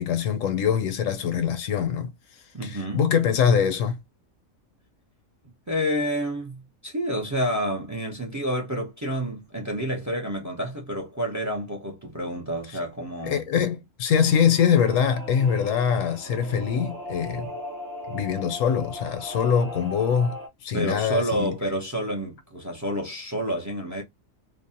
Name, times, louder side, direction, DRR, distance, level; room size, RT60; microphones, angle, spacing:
voice 1, 0.0-2.1 2.6-4.0 13.3-17.5 18.1-21.5, left 7 dB, 75° left, 0.9 m, -23 dB
voice 2, 2.5-3.0 5.7-13.4 20.7-24.0, equal, 25° right, 0.3 m, -29 dB
Singing / Musical instrument, 14.1-20.5, left 1 dB, 55° right, 0.9 m, -38 dB
2.6 x 2.1 x 2.6 m
omnidirectional pair, 1.4 m